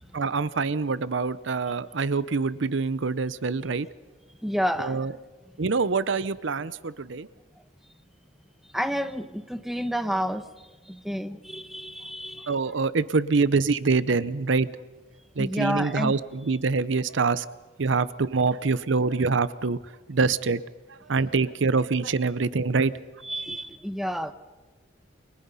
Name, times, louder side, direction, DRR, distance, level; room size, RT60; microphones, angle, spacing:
voice 1, 0.1-3.9 4.8-5.1 5.6-7.3 12.5-14.7 15.4-17.5 17.8-19.8 20.1-20.6 20.9-22.9, right 4 dB, 65° right, 17 dB, 0.7 m, -25 dB
voice 2, 4.4-5.1 8.7-10.5 10.9-12.5 15.4-16.1 23.2-24.3, equal, ahead, 9 dB, 1.0 m, -30 dB
29.0 x 25.5 x 5.6 m, 1.3 s
head